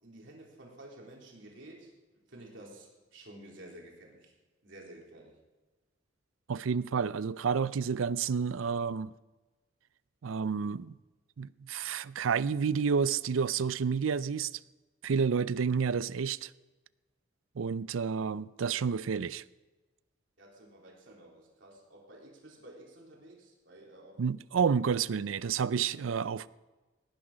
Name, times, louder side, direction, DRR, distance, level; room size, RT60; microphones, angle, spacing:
voice 1, 0.0-1.9 2.3-4.3 4.6-5.4 20.4-24.2, right 1 dB, 65° right, 3.9 m, -52 dB
voice 2, 6.5-9.1 10.2-11.0 11.4-14.5 15.0-16.5 17.6-19.4 24.2-26.5, right 6 dB, 85° right, 0.5 m, -30 dB
18.5 x 10.5 x 5.1 m
head